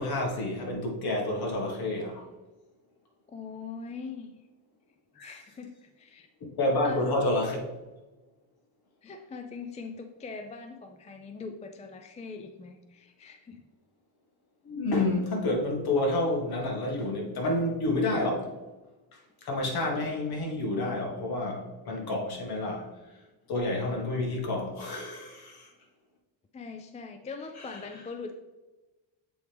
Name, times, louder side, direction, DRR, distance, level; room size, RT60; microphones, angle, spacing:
voice 1, 0.0-2.3 5.2-5.4 6.4-7.7 14.6-18.5 19.1-23.2 23.5-25.7 27.6-27.8, left 2 dB, 50° left, 0 dB, 1.9 m, -29 dB
voice 2, 3.3-4.4 5.2-6.3 6.8-7.1 9.0-13.6 26.5-28.4, left 4 dB, 15° left, 5 dB, 0.4 m, -41 dB
7.8 x 4.5 x 3.4 m, 1.2 s
cardioid pair, 110°, 46 cm